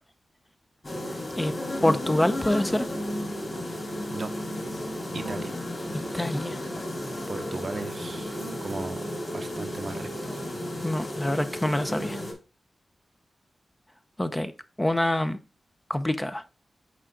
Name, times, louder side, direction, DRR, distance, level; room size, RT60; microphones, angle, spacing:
sound 1, 0.8-12.3, left 1 dB, 35° left, 2.9 m, -33 dB
voice 1, 1.8-2.9 6.1-6.6 10.8-12.2 14.2-14.5 14.8-15.4 15.9-16.4, left 1 dB, 15° left, 9 dB, 0.7 m, -26 dB
voice 2, 5.1-5.6 7.3-9.0 9.3-10.3, right 3 dB, 55° right, 9 dB, 0.7 m, -37 dB
6.3 x 4.8 x 3.8 m, 0.32 s
cardioid pair, 70°, 0 cm